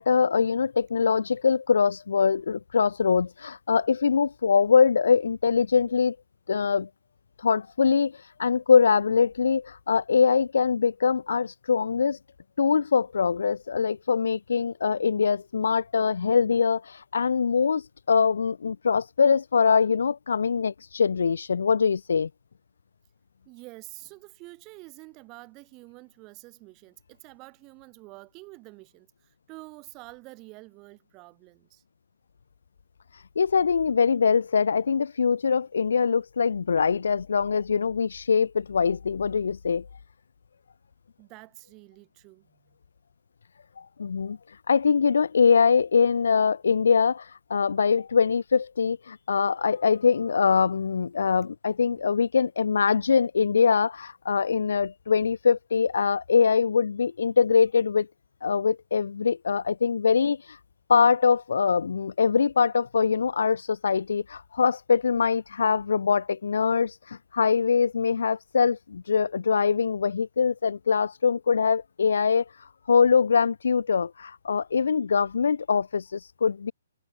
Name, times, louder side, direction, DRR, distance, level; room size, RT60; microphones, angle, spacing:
voice 1, 0.0-6.2 6.5-6.9 7.4-12.2 12.6-22.3 33.4-39.9 44.0-44.4 44.7-58.1 58.4-60.4 60.9-72.4 72.9-76.7, left 6 dB, 65° left, 0.6 m, -23 dB
voice 2, 23.5-31.8 41.2-42.8 51.9-52.0, right 24 dB, 15° right, 4.5 m, -48 dB
hypercardioid pair, 180°, 0 cm